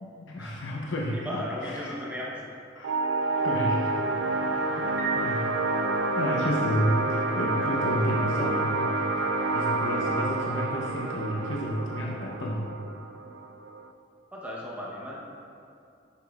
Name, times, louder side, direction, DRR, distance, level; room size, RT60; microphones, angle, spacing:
voice 1, 0.0-2.0 2.7-3.9 4.8-5.5 6.1-8.9 9.5-12.8, equal, 75° left, -2 dB, 0.7 m, -31 dB
voice 2, 1.1-2.5 4.5-5.1 14.3-15.3, equal, 10° right, -5 dB, 0.8 m, -37 dB
sound 1, 2.8-13.9, right 2 dB, 75° right, 0.4 m, -28 dB
Piano, 5.0-6.4, right 7 dB, 50° right, 0.9 m, -35 dB
9.7 x 5.7 x 2.3 m, 2.5 s
head